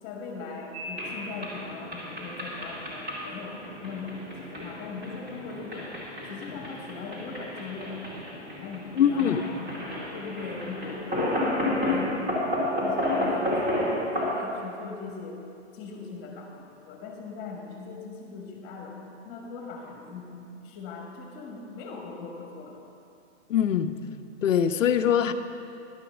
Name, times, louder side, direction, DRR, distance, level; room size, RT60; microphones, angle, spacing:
voice 1, 0.0-5.9 6.2-9.8 10.1-11.3 11.6-12.2 12.8-15.4 15.7-19.0 19.2-22.8, left 4 dB, 25° left, 1 dB, 1.6 m, -40 dB
sound 1, 0.7-14.3, left 1 dB, 20° right, 2.7 m, -32 dB
voice 2, 9.0-9.4 23.5-23.9 24.4-25.3, left 9 dB, 90° left, 8 dB, 0.7 m, -22 dB
11.5 x 6.1 x 7.2 m, 2.6 s
hypercardioid pair, 150°, 37 cm